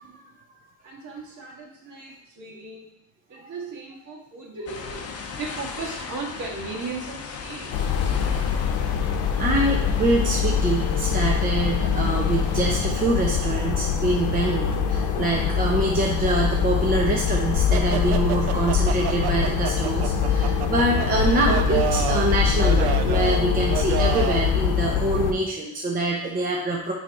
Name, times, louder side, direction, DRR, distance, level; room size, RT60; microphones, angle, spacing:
voice 1, 0.0-0.3 8.5-26.9, right 2 dB, 20° right, -1 dB, 0.7 m, -25 dB
voice 2, 0.8-2.9 3.3-7.7, right 4 dB, 50° right, -2 dB, 1.8 m, -37 dB
sound 1, 4.7-12.8, left 6 dB, 40° left, 0.7 m, -37 dB
sound 2, 7.7-25.3, left 7 dB, 75° left, 0.8 m, -23 dB
sound 3, 17.7-24.5, right 11 dB, 80° right, 0.5 m, -30 dB
6.5 x 3.4 x 4.7 m, 0.89 s
cardioid pair, 145°, 39 cm